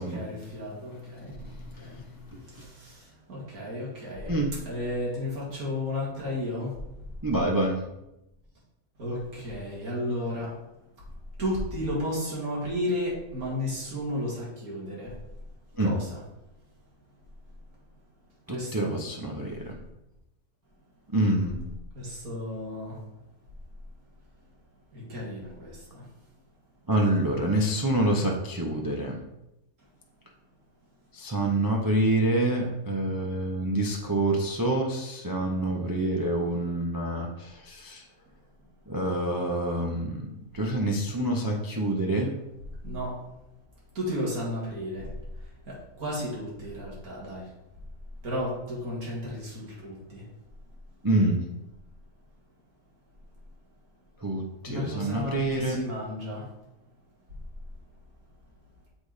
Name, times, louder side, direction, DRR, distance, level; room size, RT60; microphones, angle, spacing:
voice 1, 0.0-2.0 2.3-7.1 9.0-10.6 11.0-11.1 11.4-15.2 15.8-16.3 18.5-19.0 21.4-21.5 21.9-23.0 24.9-26.3 42.8-43.2 43.9-47.5 48.2-50.3 54.7-56.5, left 1 dB, 65° right, -5 dB, 2.6 m, -33 dB
voice 2, 7.2-7.8 15.8-15.9 18.7-19.7 21.1-21.6 26.9-29.2 31.1-38.0 38.9-40.3 40.5-42.3 51.0-51.4 54.2-55.8, right 1 dB, 20° right, 0 dB, 0.5 m, -26 dB
7.3 x 4.2 x 4.9 m, 0.91 s
omnidirectional pair, 1.6 m